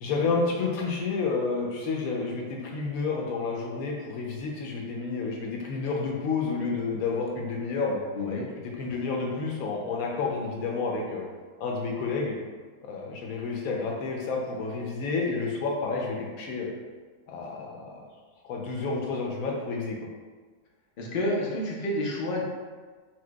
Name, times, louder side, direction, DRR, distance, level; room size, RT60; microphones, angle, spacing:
voice 1, 0.0-8.0 8.8-11.2 11.6-12.4 12.8-16.7 17.3-18.0 18.4-20.0, left 4 dB, 70° left, -1 dB, 0.9 m, -30 dB
voice 2, 21.0-22.4, left 1 dB, 85° left, -3 dB, 0.4 m, -29 dB
4.4 x 2.2 x 2.2 m, 1.4 s
omnidirectional pair, 1.7 m